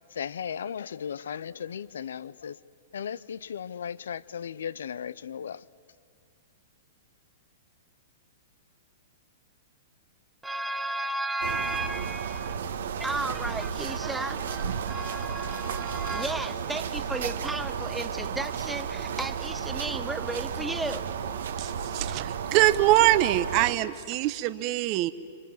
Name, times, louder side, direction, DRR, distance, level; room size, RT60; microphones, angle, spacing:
voice 1, 0.1-2.6 2.9-5.7, left 8 dB, 75° left, 0.6 m, -36 dB
voice 2, 10.4-12.6 13.0-21.1, right 2 dB, 5° right, 1.1 m, -34 dB
sound 1, 11.4-23.7, right 7 dB, 75° right, 1.5 m, -33 dB
voice 3, 21.6-25.1, right 15 dB, 40° right, 0.9 m, -23 dB
30.0 x 25.5 x 7.6 m
hypercardioid pair, 125°, 0 cm